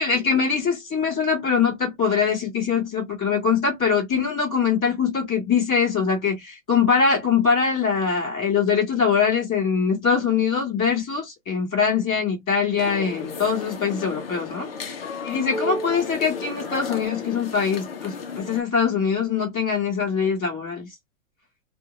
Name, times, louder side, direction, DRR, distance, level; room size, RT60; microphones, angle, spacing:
voice 1, 0.0-14.7 15.2-20.9, left 6 dB, 5° left, 0.5 m, -23 dB
sound 1, 12.8-18.6, left 3 dB, 45° left, 0.7 m, -33 dB
2.6 x 2.4 x 2.7 m
hypercardioid pair, 170°, 40 cm